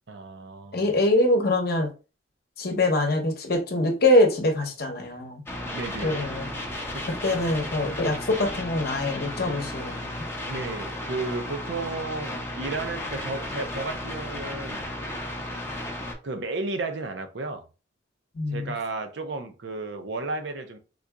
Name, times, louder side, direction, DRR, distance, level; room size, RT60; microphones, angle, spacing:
voice 1, 0.1-1.0 5.7-6.3 6.9-7.1 7.8-8.0 10.5-14.9 16.2-17.7 18.5-20.8, right 3 dB, 60° right, 0.5 m, -33 dB
voice 2, 0.7-1.9 2.6-5.4 6.0-6.5 7.2-10.3 18.3-18.7, left 1 dB, 50° left, 0.8 m, -24 dB
sound 1, 5.5-16.1, left 1 dB, 10° left, 0.6 m, -34 dB
3.8 x 2.8 x 2.3 m
head